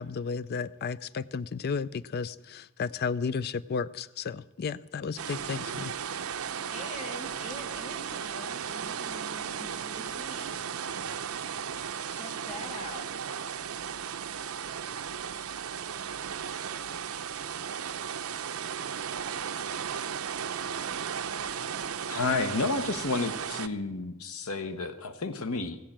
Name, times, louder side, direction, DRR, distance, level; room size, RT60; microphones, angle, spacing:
voice 1, 0.0-5.9, left 5 dB, 50° left, 18 dB, 0.4 m, -33 dB
sound 1, 5.2-23.7, right 7 dB, 85° right, 0.7 m, -35 dB
voice 2, 6.7-10.6 12.1-13.1 13.5-13.7, equal, 30° left, 2 dB, 2.5 m, -44 dB
voice 3, 22.1-25.8, left 3 dB, 85° left, 9 dB, 0.9 m, -31 dB
16.5 x 7.6 x 8.7 m, 0.98 s
head